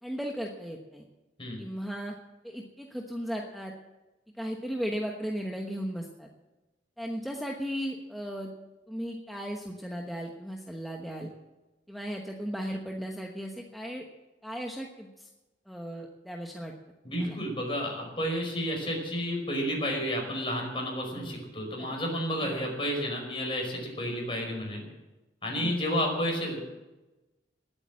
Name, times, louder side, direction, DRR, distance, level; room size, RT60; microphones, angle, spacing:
voice 1, 0.0-1.0 1.6-2.1 2.4-3.7 4.3-6.3 7.0-8.5 8.9-11.3 11.9-14.0 14.4-15.3 15.7-16.7 17.1-17.4 21.1-21.4 21.8-22.0 22.4-22.7 25.6-26.0, equal, ahead, 0 dB, 1.1 m, -36 dB
voice 2, 17.0-24.8 25.4-26.6, equal, 30° left, 0 dB, 5.2 m, -31 dB
19.5 x 8.8 x 7.5 m, 1.1 s
head